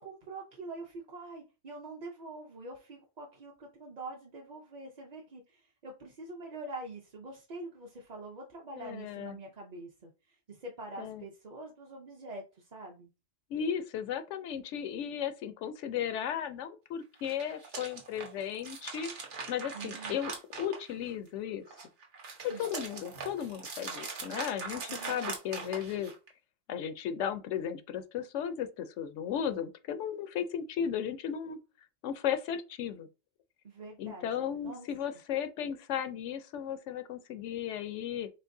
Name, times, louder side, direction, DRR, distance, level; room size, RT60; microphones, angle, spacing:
voice 1, 0.0-13.1 19.7-20.2 22.4-22.7 24.9-25.3 33.6-34.3 34.6-34.9, right 2 dB, 45° right, 0.7 m, -45 dB
voice 2, 8.8-9.4 11.0-11.2 13.5-19.1 19.5-20.3 20.6-21.6 22.6-26.1 26.7-31.6 32.0-33.1 34.0-38.3, left 9 dB, 85° left, 0.9 m, -35 dB
sound 1, 17.1-21.3 21.7-26.3, right 4 dB, 75° right, 1.4 m, -41 dB
4.4 x 3.2 x 2.6 m
omnidirectional pair, 1.2 m